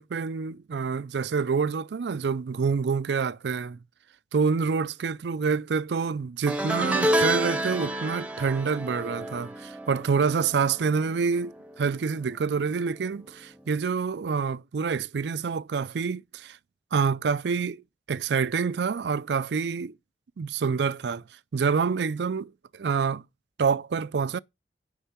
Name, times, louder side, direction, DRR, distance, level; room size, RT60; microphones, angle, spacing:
voice 1, 0.0-3.8 4.3-16.6 16.9-17.8 18.1-19.9 20.4-21.2 21.5-23.2 23.6-24.4, right 5 dB, 75° right, 0.4 m, -27 dB
sound 1, 6.5-11.9 12.1-12.5 13.7-13.8, right 1 dB, 10° right, 0.8 m, -29 dB
10.0 x 5.5 x 5.7 m
head